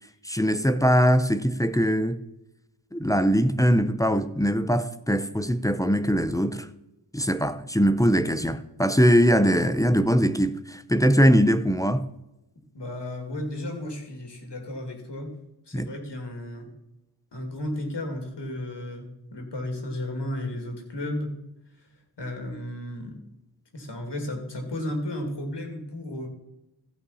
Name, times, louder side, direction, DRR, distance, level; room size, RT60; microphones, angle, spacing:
voice 1, 0.2-2.2 2.9-6.7 7.1-12.0 15.7-15.9, equal, 10° left, 0.6 m, -21 dB
voice 2, 12.7-15.4 15.7-16.7 17.3-21.3 21.8-21.9 22.2-23.2 23.7-26.3, left 1 dB, 80° left, 2.4 m, -33 dB
15.5 x 5.6 x 4.1 m
wide cardioid pair, 50°, 41 cm